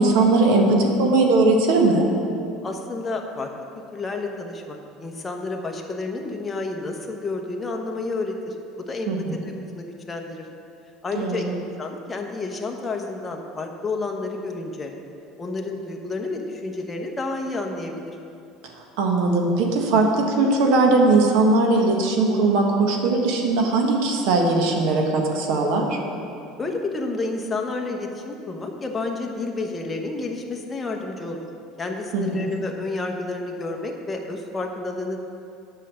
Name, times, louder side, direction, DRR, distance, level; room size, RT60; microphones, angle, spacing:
voice 1, 0.0-2.1 9.1-9.4 11.1-11.5 19.0-26.0 32.1-32.5, right 3 dB, 75° right, 1 dB, 1.5 m, -19 dB
voice 2, 2.6-3.5 3.9-9.1 9.4-10.5 11.0-14.9 15.4-18.2 26.6-31.5 31.8-35.2, left 3 dB, 20° left, 2 dB, 1.0 m, -30 dB
8.2 x 5.6 x 7.6 m, 2.6 s
supercardioid pair, 125°, 0 cm